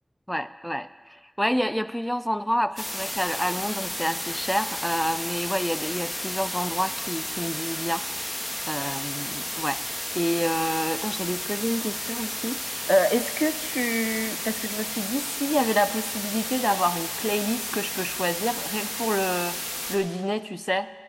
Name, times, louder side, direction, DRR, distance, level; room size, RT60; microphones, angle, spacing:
voice 1, 0.3-9.8 10.1-20.9, equal, 5° left, 13 dB, 0.4 m, -28 dB
sound 1, 2.8-20.0, left 1 dB, 30° left, 1.5 m, -32 dB
sound 2, 5.2-5.5 6.4-6.7 7.4-7.7 8.2-8.7 9.2-9.8 10.3-11.0 11.5-11.9 12.2-12.3 14.0-14.4 15.3-15.7 16.7-16.8, right 1 dB, 30° right, 2.8 m, -49 dB
19.5 x 9.0 x 4.0 m, 1.4 s
wide cardioid pair, 50°, 0 cm